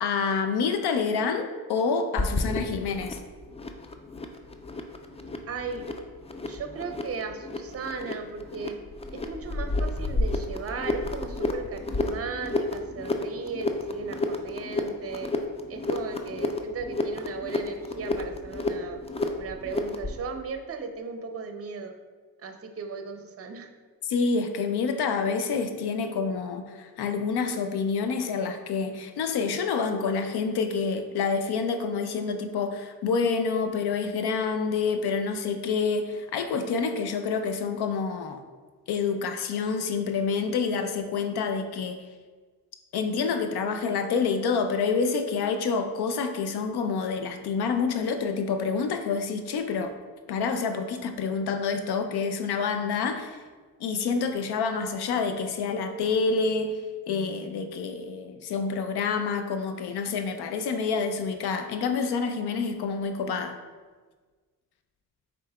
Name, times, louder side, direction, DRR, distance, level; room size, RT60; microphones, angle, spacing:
voice 1, 0.0-3.2 24.1-38.4 38.9-42.0 42.9-49.9 50.3-53.4 53.8-56.8 57.1-63.6, left 5 dB, 80° left, 7 dB, 0.5 m, -28 dB
sound 1, 2.2-20.2, left 2 dB, 15° left, 0.3 m, -31 dB
voice 2, 5.5-5.8 6.5-8.7 9.1-15.3 15.7-19.0 19.4-21.9 22.4-23.7, right 5 dB, 40° right, 6 dB, 0.6 m, -36 dB
5.4 x 3.9 x 2.2 m, 1.4 s
cardioid pair, 65°, 39 cm